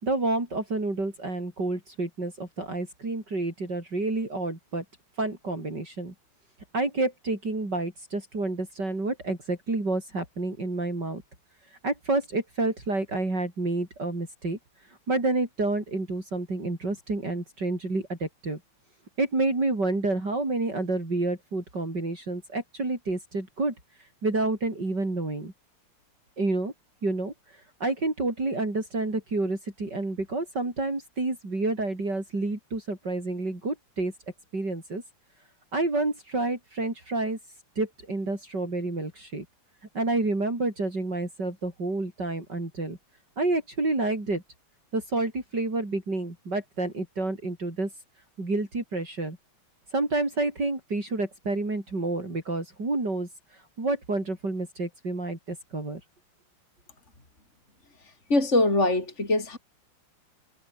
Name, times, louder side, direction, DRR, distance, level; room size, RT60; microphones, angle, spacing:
voice 1, 0.0-4.8 5.2-6.1 6.7-11.2 11.8-14.6 15.1-18.6 19.2-23.7 24.2-25.5 26.4-26.7 27.0-27.3 27.8-34.1 34.5-35.0 35.7-37.4 37.8-39.4 39.9-43.0 43.4-44.4 44.9-47.9 48.4-49.4 49.9-53.3 53.8-56.0, right 2 dB, 50° right, 6.8 m, -29 dB
voice 2, 58.3-59.6, left 2 dB, 30° left, 5.1 m, -23 dB
omnidirectional pair, 2.4 m